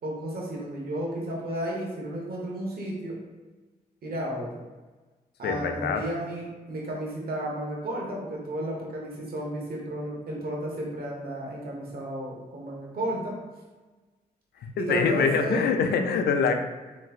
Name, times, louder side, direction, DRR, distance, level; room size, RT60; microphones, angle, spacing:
voice 1, 0.0-3.2 4.0-4.6 5.4-13.4 14.7-15.6, right 1 dB, 60° right, -3 dB, 1.0 m, -33 dB
voice 2, 5.4-6.0 14.6-16.5, left 5 dB, 75° left, 6 dB, 0.4 m, -24 dB
3.3 x 2.9 x 2.4 m, 1.3 s
cardioid pair, 55°, 17 cm